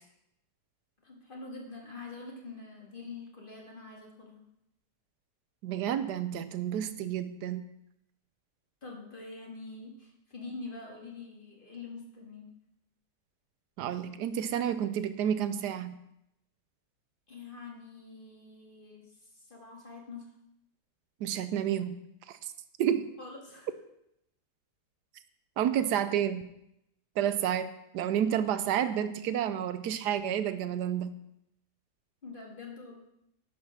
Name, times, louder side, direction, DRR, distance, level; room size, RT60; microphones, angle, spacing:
voice 1, 1.0-4.4 8.8-12.5 17.3-20.3 23.2-23.7 32.2-33.0, left 3 dB, 30° left, -1 dB, 2.0 m, -45 dB
voice 2, 5.6-7.6 13.8-15.9 21.2-22.0 22.3-22.5 22.8-23.1 25.6-26.4 27.2-31.1, right 9 dB, 85° right, 12 dB, 1.3 m, -30 dB
10.5 x 5.6 x 6.4 m, 0.81 s
omnidirectional pair, 1.7 m